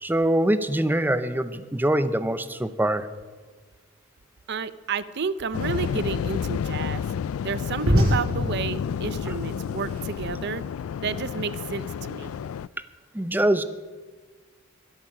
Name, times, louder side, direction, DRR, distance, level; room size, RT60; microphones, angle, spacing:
voice 1, 0.0-3.1 13.1-13.6, right 1 dB, 10° right, 12 dB, 0.6 m, -23 dB
voice 2, 4.5-7.0 7.4-10.6 11.0-12.3, right 5 dB, 50° right, 16 dB, 0.5 m, -31 dB
Waves surf, 5.5-12.7, left 7 dB, 75° left, 0.3 m, -30 dB
sound 1, 5.6-10.7, equal, 80° right, 6.2 m, -28 dB
22.0 x 8.5 x 6.2 m, 1.4 s
head